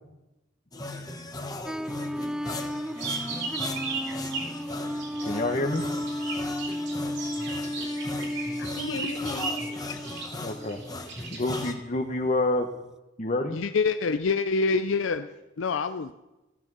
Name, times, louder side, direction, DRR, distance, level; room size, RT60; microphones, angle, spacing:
sound 1, 0.7-11.7, left 2 dB, 20° left, 1.3 m, -38 dB
sound 2, 1.7-11.1 11.5-11.9, equal, 5° right, 0.4 m, -34 dB
sound 3, 2.9-5.3 5.7-11.7, right 4 dB, 65° right, 3.6 m, -36 dB
voice 1, 5.2-5.8 9.2-9.5 10.4-10.8 11.3-12.7 13.2-13.6, left 2 dB, 40° left, 3 dB, 1.1 m, -28 dB
voice 2, 8.0-10.5, left 4 dB, 70° left, 12 dB, 1.0 m, -41 dB
voice 3, 13.5-15.3 15.6-16.1, left 4 dB, 85° left, 9 dB, 0.5 m, -26 dB
14.5 x 12.5 x 6.2 m, 1.0 s
head